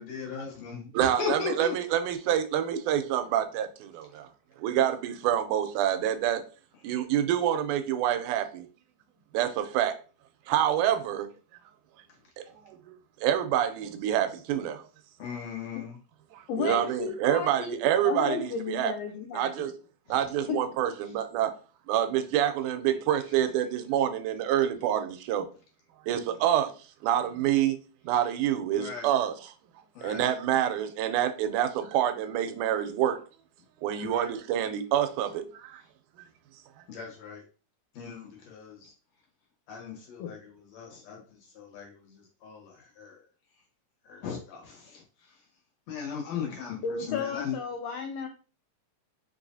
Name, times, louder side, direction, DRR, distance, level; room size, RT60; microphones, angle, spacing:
voice 1, 0.0-1.7 15.2-16.0 28.7-29.1 29.9-30.3 34.0-34.3 36.9-37.4 37.9-38.9 39.7-43.2 44.0-45.4 45.9-47.6, left 6 dB, 65° left, 2.2 m, -38 dB
voice 2, 0.9-4.3 4.6-6.4 6.8-8.7 9.3-10.0 10.5-11.3 12.7-14.8 16.3-18.9 19.3-19.7 20.1-21.5 21.9-25.5 26.1-26.7 27.0-27.8 28.0-29.5 30.0-33.2 33.8-35.8, right 10 dB, 85° right, 2.0 m, -27 dB
voice 3, 16.5-19.7 20.5-20.6 40.2-40.3 46.8-48.3, left 6 dB, 90° left, 1.4 m, -33 dB
5.2 x 3.0 x 2.6 m
omnidirectional pair, 3.5 m